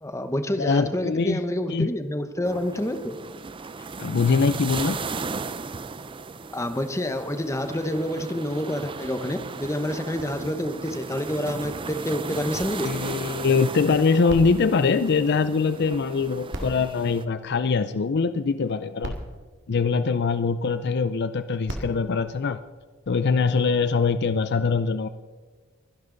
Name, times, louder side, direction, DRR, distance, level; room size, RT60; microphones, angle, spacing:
voice 1, 0.0-3.2 6.5-12.9, left 1 dB, 15° left, 8 dB, 1.0 m, -28 dB
voice 2, 0.6-1.4 1.7-1.9 4.0-5.0 12.8-19.2 19.7-22.6 23.1-25.1, left 4 dB, 55° left, 12 dB, 0.5 m, -23 dB
sound 1, 2.4-17.2, right 4 dB, 25° right, 0.5 m, -36 dB
sound 2, 14.3-15.9 16.4-18.1 18.7-18.8 19.0-20.6 21.4-23.2 23.9-24.0, equal, 60° right, 2.1 m, -39 dB
23.5 x 11.0 x 3.9 m, 1.4 s
head